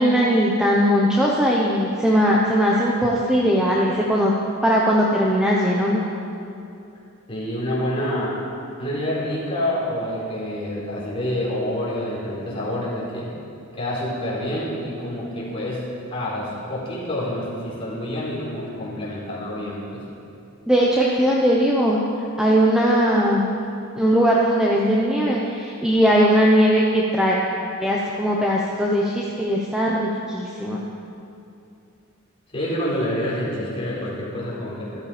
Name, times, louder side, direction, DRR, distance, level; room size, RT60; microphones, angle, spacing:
voice 1, 0.0-4.3 4.6-6.0 20.7-22.0 22.4-23.5 23.9-27.4 27.8-30.8, equal, 5° right, -4 dB, 0.9 m, -19 dB
voice 2, 7.3-8.4 8.8-13.3 13.7-15.8 16.1-20.0 32.5-35.0, left 1 dB, 25° left, -7 dB, 4.2 m, -27 dB
13.5 x 13.5 x 5.2 m, 2.6 s
head